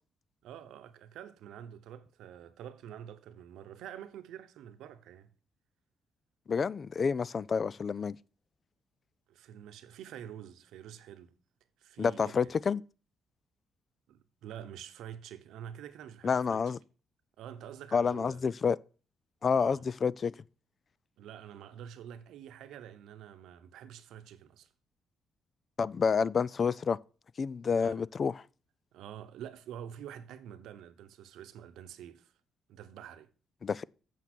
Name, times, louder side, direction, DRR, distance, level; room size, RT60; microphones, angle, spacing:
voice 1, 0.4-5.3 9.3-11.4 11.8-12.5 14.1-16.8 17.4-18.4 19.6-19.8 21.2-24.7 27.7-28.0 28.9-32.3 32.7-33.3, right 9 dB, 85° right, 0.9 m, -47 dB
voice 2, 6.5-8.2 12.0-12.8 16.2-16.8 17.9-18.8 19.4-20.3 25.8-27.0 27.4-28.3 33.6-33.8, left 5 dB, 40° left, 0.4 m, -29 dB
8.3 x 6.8 x 6.1 m
cardioid pair, 90°, 0 cm